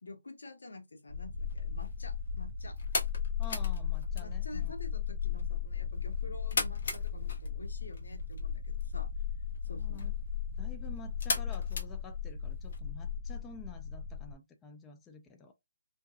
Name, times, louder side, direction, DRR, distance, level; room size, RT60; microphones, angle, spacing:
voice 1, 0.0-2.8 4.2-9.1 9.6-10.1, left 2 dB, 85° left, 0.8 m, -49 dB
sound 1, 1.1-14.3, left 7 dB, 75° right, 0.4 m, -36 dB
sound 2, 1.4-12.8, left 3 dB, 55° left, 0.9 m, -41 dB
voice 2, 3.4-4.7 9.7-10.1 10.6-15.5, left 5 dB, 10° left, 0.3 m, -50 dB
2.6 x 2.1 x 2.4 m
hypercardioid pair, 165°, 0 cm